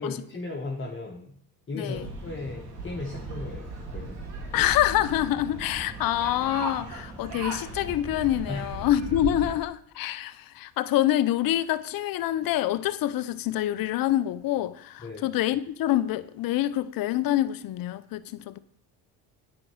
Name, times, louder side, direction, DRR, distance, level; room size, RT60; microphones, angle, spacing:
voice 1, 0.0-1.4 1.7-3.7 3.9-4.4 8.5-8.7 15.0-15.3, left 2 dB, 25° left, 1.5 m, -36 dB
voice 2, 1.7-2.1 4.5-18.6, left 13 dB, 50° left, 0.6 m, -26 dB
sound 1, 1.9-9.5, right 2 dB, 90° right, 2.3 m, -37 dB
8.9 x 4.4 x 6.2 m
hypercardioid pair, 65°, 46 cm